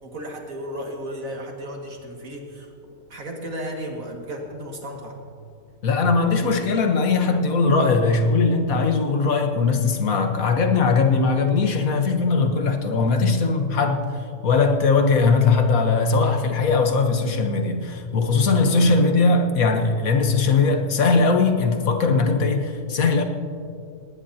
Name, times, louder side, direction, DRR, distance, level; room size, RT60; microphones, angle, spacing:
voice 1, 0.0-2.7 3.1-5.2 18.6-19.0, equal, 75° right, 1 dB, 2.4 m, -34 dB
voice 2, 5.8-14.1 14.4-23.2, left 4 dB, 85° left, 5 dB, 1.6 m, -20 dB
19.0 x 18.5 x 2.9 m, 2.4 s
omnidirectional pair, 1.4 m